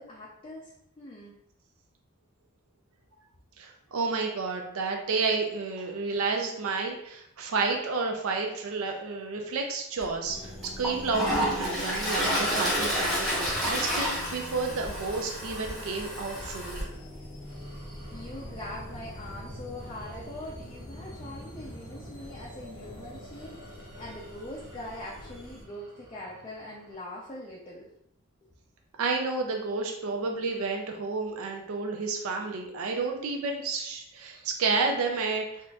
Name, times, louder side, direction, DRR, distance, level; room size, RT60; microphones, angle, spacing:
voice 1, 0.0-1.4 18.1-27.9, left 1 dB, 25° left, -5 dB, 0.4 m, -42 dB
voice 2, 3.6-16.9 29.0-35.4, right 4 dB, 70° right, 2 dB, 0.4 m, -31 dB
Toilet flush, 10.0-10.1 10.6-16.8, equal, ahead, 0.7 m, -30 dB
sound 1, 10.2-25.6, left 1 dB, 70° left, 0.8 m, -45 dB
sound 2, 17.2-26.9, equal, 55° right, 0.9 m, -47 dB
4.0 x 2.4 x 2.3 m, 0.77 s
head